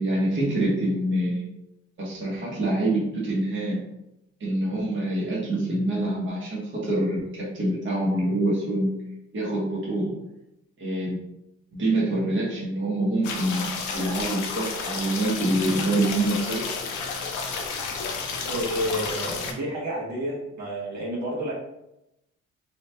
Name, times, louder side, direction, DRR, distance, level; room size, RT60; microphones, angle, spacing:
voice 1, 0.0-1.5 2.0-3.9 4.4-8.9 9.3-10.2 10.8-11.2 11.7-16.6, right 1 dB, 40° right, -6 dB, 1.2 m, -26 dB
sound 1, 13.2-19.5, left 5 dB, 75° left, 0.6 m, -31 dB
voice 2, 18.5-21.5, equal, 65° right, -6 dB, 1.3 m, -30 dB
3.0 x 2.9 x 2.2 m, 0.87 s
cardioid pair, 90°, 30 cm